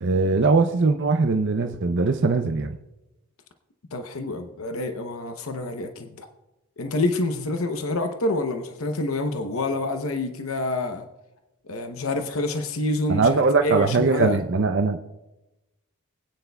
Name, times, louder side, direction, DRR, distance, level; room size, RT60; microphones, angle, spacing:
voice 1, 0.0-2.8 13.1-15.0, right 4 dB, 55° right, 5 dB, 0.5 m, -21 dB
voice 2, 3.9-6.3 6.8-11.0 11.7-14.4, left 2 dB, 75° left, 6 dB, 0.8 m, -27 dB
25.0 x 9.3 x 2.3 m, 1.0 s
head